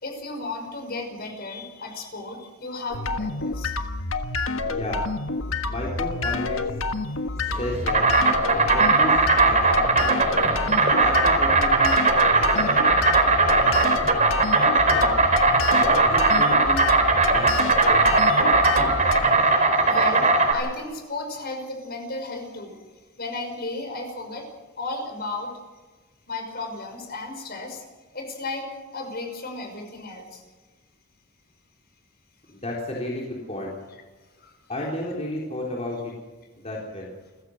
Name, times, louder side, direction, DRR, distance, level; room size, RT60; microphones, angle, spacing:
voice 1, 0.0-3.7 12.4-12.5 19.8-22.8 23.2-25.5 26.3-27.8 28.1-30.4 34.4-34.5, left 2 dB, 45° left, 4 dB, 5.7 m, -34 dB
sound 1, 2.9-19.3, left 3 dB, 70° left, 1.6 m, -28 dB
voice 2, 4.6-5.1 5.7-6.7 7.4-8.1 8.7-10.0 11.0-12.0 12.3-12.8 13.5-14.1 14.8-15.1 15.7-16.9 17.2-17.5 17.9-18.0 18.4-18.7 32.5-33.8 34.7-36.1 36.5-37.1, left 1 dB, 30° left, -3 dB, 3.9 m, -32 dB
Insect, 7.5-20.5, right 3 dB, 35° right, 4.3 m, -19 dB
29.0 x 15.5 x 6.5 m, 1.3 s
head